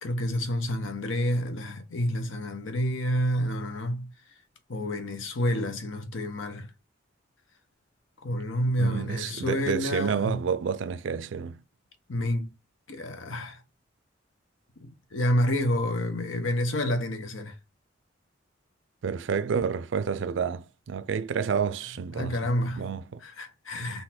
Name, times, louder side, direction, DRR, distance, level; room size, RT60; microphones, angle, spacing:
voice 1, 0.0-4.1 4.7-6.7 8.2-10.4 12.1-12.5 12.9-13.6 14.8-17.6 22.1-22.9 23.2-24.0, equal, 85° left, 0.9 m, -29 dB
voice 2, 8.8-11.6 19.0-22.4 22.8-23.2, right 6 dB, 70° right, 0.4 m, -29 dB
3.9 x 2.7 x 4.2 m
head